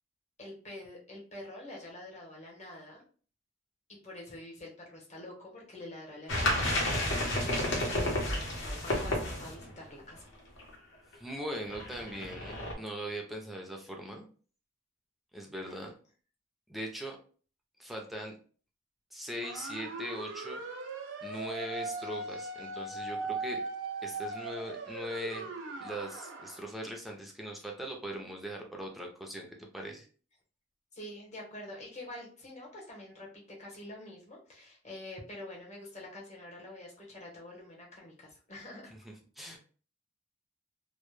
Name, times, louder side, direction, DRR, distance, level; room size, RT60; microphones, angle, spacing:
voice 1, 0.4-3.0 4.0-10.3 15.7-15.8 30.9-33.3 33.6-38.9, left 1 dB, 40° left, -2 dB, 0.9 m, -46 dB
sound 1, 6.3-9.7 10.2-10.3 10.6-10.7 11.1-11.2 11.7-12.7, left 1 dB, 70° left, 0.7 m, -31 dB
voice 2, 11.2-14.3 15.3-15.9 16.7-17.2 17.8-18.3 19.1-20.6 21.2-23.6 24.0-25.5 25.8-30.1 39.0-39.6, equal, ahead, 1 dB, 0.4 m, -40 dB
sound 2, 19.4-26.6, right 3 dB, 85° right, 0.4 m, -39 dB
2.0 x 2.0 x 3.0 m, 0.41 s
head